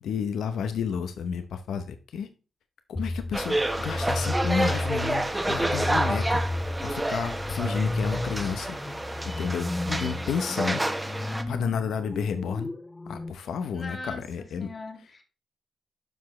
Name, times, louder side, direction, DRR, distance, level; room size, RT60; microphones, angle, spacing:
voice 1, 0.0-2.3 2.9-6.4 6.8-8.8 9.2-10.8 11.5-12.7 13.1-14.7, left 7 dB, 85° left, 9 dB, 0.8 m, -31 dB
sound 1, 3.0-13.3, left 2 dB, 25° left, 0.6 m, -33 dB
sound 2, 3.3-11.4, right 1 dB, 15° right, 1.2 m, -29 dB
voice 2, 13.7-15.2, left 3 dB, 40° left, 5 dB, 2.1 m, -40 dB
12.0 x 4.8 x 3.1 m, 0.35 s
cardioid pair, 60°, 0 cm